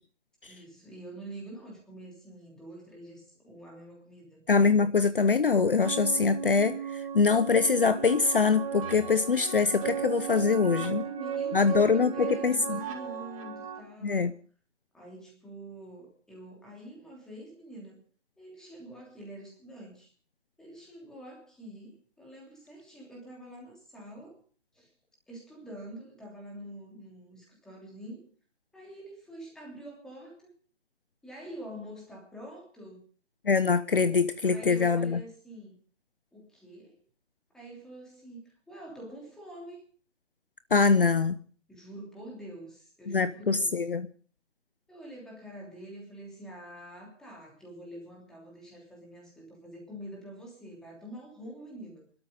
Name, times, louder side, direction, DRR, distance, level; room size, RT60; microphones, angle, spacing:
voice 1, 0.4-4.4 10.6-14.4 14.9-18.0 18.4-20.1 20.6-24.4 24.7-24.9 25.3-28.3 28.7-30.5 31.2-33.0 34.4-35.8 36.3-37.0 37.5-39.8 41.7-43.8 44.9-52.1, right 1 dB, ahead, -2 dB, 3.1 m, -46 dB
voice 2, 4.5-11.0 11.5-12.8 14.0-14.3 33.4-35.2 40.7-41.3 43.1-44.1, left 4 dB, 50° left, 13 dB, 0.9 m, -24 dB
sound 1, 5.8-13.8, right 7 dB, 25° right, 3.2 m, -36 dB
23.5 x 13.0 x 3.8 m, 0.43 s
figure-of-eight pair, 155°, 36 cm